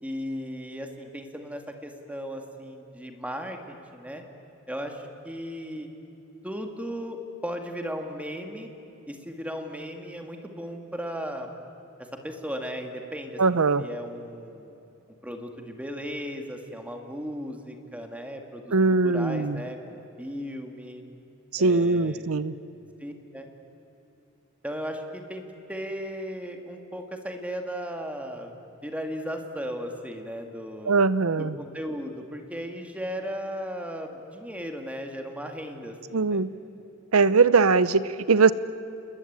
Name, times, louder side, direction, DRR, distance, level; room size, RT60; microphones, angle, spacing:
voice 1, 0.0-4.2 4.7-5.9 6.4-8.7 9.1-11.5 12.2-14.7 15.2-18.7 19.0-21.0 21.6-22.3 23.0-23.5 24.6-25.4 25.7-28.5 28.8-30.9 31.4-36.4, equal, 5° right, 4 dB, 2.3 m, -36 dB
voice 2, 13.4-13.8 18.7-19.6 21.5-22.5 30.9-31.6 36.1-36.5 37.1-38.5, right 4 dB, 85° right, 16 dB, 0.8 m, -21 dB
28.5 x 21.5 x 8.9 m, 2.9 s
head